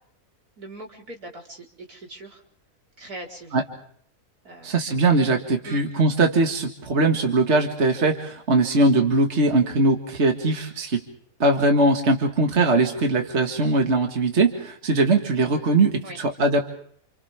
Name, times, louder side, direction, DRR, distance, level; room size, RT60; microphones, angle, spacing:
voice 1, 0.6-2.4 3.0-3.6 4.4-5.0 5.6-5.8 16.0-16.2, right 1 dB, 75° right, 0 dB, 5.0 m, -41 dB
voice 2, 4.6-11.0 11.4-16.6, right 2 dB, 45° right, 3 dB, 2.2 m, -21 dB
29.5 x 29.5 x 3.6 m, 0.62 s
omnidirectional pair, 1.6 m